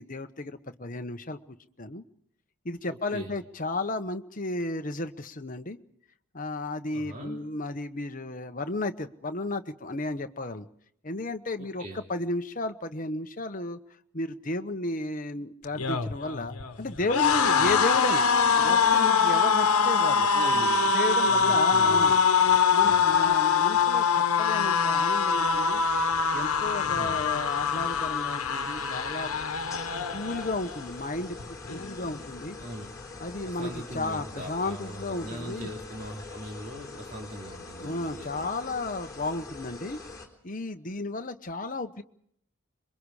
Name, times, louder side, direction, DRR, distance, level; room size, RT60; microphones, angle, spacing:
voice 1, 0.0-1.4 1.8-2.0 2.6-5.8 6.3-10.7 11.0-11.8 12.1-13.8 14.1-20.3 20.9-22.2 22.7-25.8 26.3-29.3 30.1-32.6 33.2-35.7 37.8-40.0 40.4-42.0, left 2 dB, 35° left, 7 dB, 1.1 m, -33 dB
voice 2, 2.9-3.3 6.9-7.4 11.6-12.0 17.5-17.8 20.3-20.9 21.2-22.2 22.8-23.1 26.8-27.2 32.6-32.9 33.4-38.5, right 1 dB, 40° right, -1 dB, 3.2 m, -40 dB
sound 1, 15.6-30.8 31.2-31.4 31.7-32.5, left 5 dB, 85° left, 1.3 m, -24 dB
sound 2, 24.6-40.3, left 3 dB, 15° left, 3.7 m, -44 dB
26.5 x 23.5 x 4.9 m, 0.69 s
head